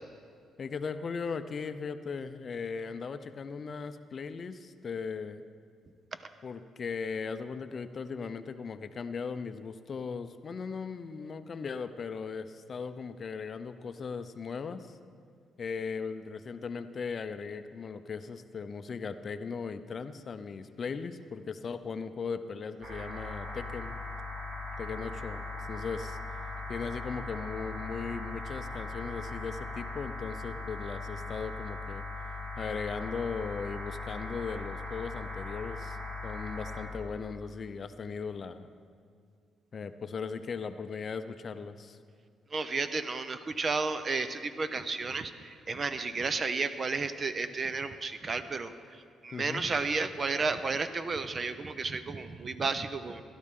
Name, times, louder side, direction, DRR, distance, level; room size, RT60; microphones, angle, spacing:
voice 1, 0.6-5.4 6.4-14.9 15.6-24.0 24.8-26.2 26.7-32.0 32.6-36.0 36.2-38.7 39.7-42.0 49.3-49.7, left 5 dB, 45° left, 10 dB, 0.5 m, -38 dB
sound 1, 22.8-36.9, left 3 dB, 55° right, 3.4 m, -39 dB
voice 2, 42.5-53.2, right 4 dB, 40° right, 11 dB, 0.7 m, -32 dB
16.5 x 12.0 x 3.7 m, 2.1 s
cardioid pair, 90°, 0 cm